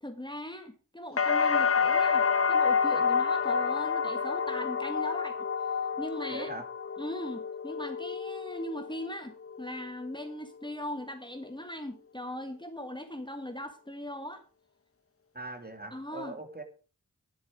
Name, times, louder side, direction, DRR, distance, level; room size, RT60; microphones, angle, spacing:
voice 1, 0.0-5.4 6.0-6.5 7.0-14.4 15.9-16.4, left 1 dB, 15° left, 7 dB, 1.6 m, -39 dB
sound 1, 1.2-9.1 9.4-10.1, left 6 dB, 40° left, 1.0 m, -28 dB
voice 2, 6.3-6.7 15.3-16.6, right 2 dB, 25° right, 6 dB, 2.6 m, -41 dB
11.0 x 10.0 x 5.0 m, 0.37 s
cardioid pair, 45°, 34 cm